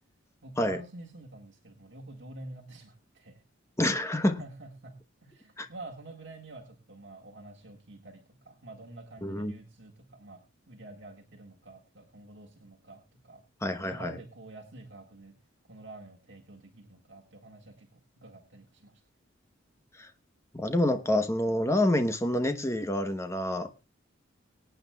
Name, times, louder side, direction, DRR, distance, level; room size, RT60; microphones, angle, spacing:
voice 1, 0.4-3.4 4.4-10.4 10.7-13.4 13.9-15.4 15.7-19.0, right 2 dB, 65° right, 1.8 m, -48 dB
voice 2, 3.8-4.4 5.6-5.7 9.2-9.5 13.6-14.2 20.0-20.1 20.5-23.7, left 1 dB, 15° left, 0.9 m, -27 dB
24.5 x 9.0 x 2.3 m
head